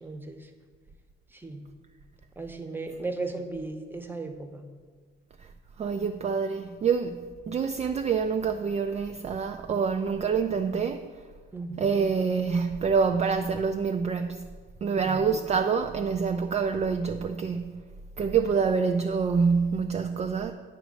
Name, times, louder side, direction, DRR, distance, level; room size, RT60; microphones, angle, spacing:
voice 1, 0.0-0.5 1.3-1.7 2.4-4.6 11.5-12.0 15.0-15.4, right 3 dB, 10° right, 0.8 m, -36 dB
voice 2, 5.8-7.2 7.5-11.1 11.8-14.5 14.8-17.8 18.2-20.5, right 5 dB, 35° right, 0.4 m, -26 dB
9.0 x 3.1 x 6.3 m
cardioid pair, 90°, 20 cm